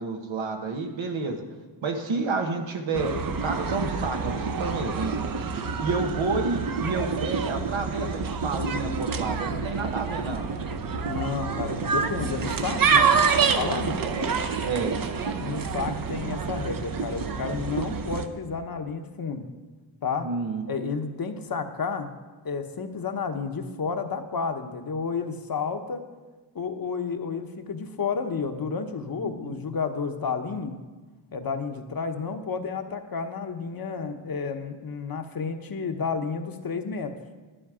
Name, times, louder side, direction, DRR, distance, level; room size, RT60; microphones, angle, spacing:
voice 1, 0.0-1.4 1.8-5.2 5.8-10.5 14.0-15.0 20.2-20.9 29.2-29.3, right 3 dB, 90° right, 4 dB, 1.4 m, -30 dB
sound 1, 2.9-18.3, right 5 dB, 45° right, 0.8 m, -27 dB
voice 2, 11.0-14.0 15.4-19.5 20.0-20.3 20.7-22.1 22.4-26.0 26.5-30.7 31.3-37.1, left 5 dB, 50° left, 6 dB, 1.0 m, -31 dB
11.5 x 10.5 x 5.0 m, 1.3 s
wide cardioid pair, 110°, 46 cm